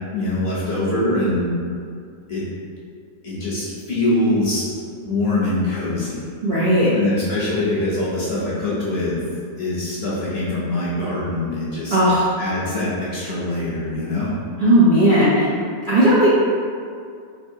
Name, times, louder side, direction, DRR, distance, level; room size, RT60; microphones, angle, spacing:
voice 1, 0.1-1.6 2.3-2.4 3.2-4.6 5.0-6.3 6.9-9.2 9.6-12.0 12.4-14.3, left 1 dB, 50° left, -7 dB, 0.8 m, -23 dB
voice 2, 6.4-6.9 11.9-12.3 14.6-15.5 15.9-16.3, right 1 dB, 55° right, -10 dB, 0.6 m, -15 dB
4.7 x 2.7 x 2.7 m, 2.3 s
omnidirectional pair, 1.6 m